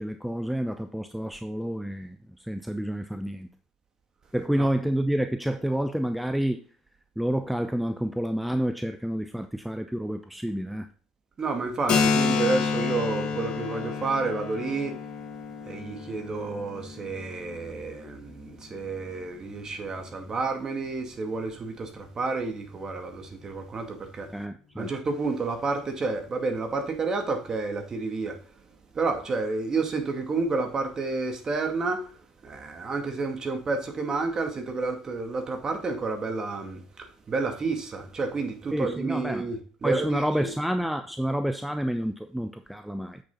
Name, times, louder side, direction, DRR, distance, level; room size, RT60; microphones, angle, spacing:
voice 1, 0.0-3.5 4.3-6.6 7.2-10.9 24.3-24.9 38.7-39.5 39.8-43.2, equal, ahead, 0.7 m, -29 dB
voice 2, 11.4-14.9 15.6-24.5 24.8-28.5 28.9-40.5, right 3 dB, 35° right, 2.4 m, -30 dB
Keyboard (musical), 11.9-19.3, left 5 dB, 45° left, 2.4 m, -30 dB
7.9 x 6.9 x 3.9 m
hypercardioid pair, 70°, 2 cm